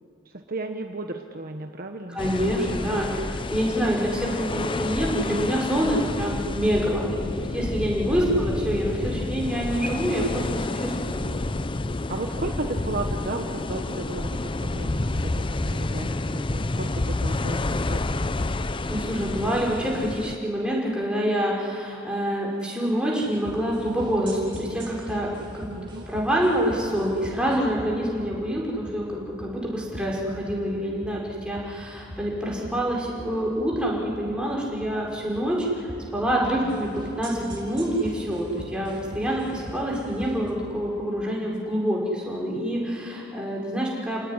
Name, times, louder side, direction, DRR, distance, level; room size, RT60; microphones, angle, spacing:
voice 1, 0.3-2.2 8.3-8.6 12.1-18.3 25.7-26.1 36.5-36.8, right 2 dB, 50° right, 5 dB, 1.2 m, -34 dB
voice 2, 2.1-11.2 18.9-25.7 26.1-44.2, equal, 5° right, -3 dB, 5.5 m, -26 dB
sound 1, 2.2-20.4, left 2 dB, 25° left, 0.6 m, -29 dB
sound 2, 23.2-40.5, equal, 25° right, 5.0 m, -41 dB
29.5 x 18.5 x 9.9 m, 2.6 s
head